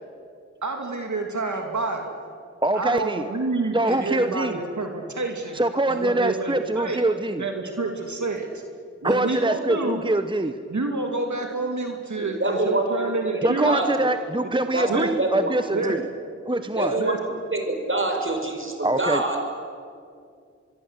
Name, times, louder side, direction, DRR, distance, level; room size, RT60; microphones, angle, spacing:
voice 1, 0.6-2.2 2.7-5.6 5.9-7.0 7.4-8.6 9.0-10.0 10.7-13.8 14.4-14.5 14.9-15.1 15.7-16.1 17.0-17.2, right 3 dB, 80° right, 3 dB, 2.6 m, -28 dB
voice 2, 2.6-3.3 3.7-4.6 5.5-7.4 9.0-10.6 13.4-16.0 16.5-17.0 18.8-19.2, right 1 dB, 15° right, 9 dB, 1.0 m, -24 dB
voice 3, 12.4-14.1 14.7-14.9 15.2-15.5 15.9-16.0 16.8-17.2 17.5-19.4, right 2 dB, 45° right, 4 dB, 5.3 m, -26 dB
25.0 x 22.0 x 8.2 m, 2.3 s
wide cardioid pair, 45°, 29 cm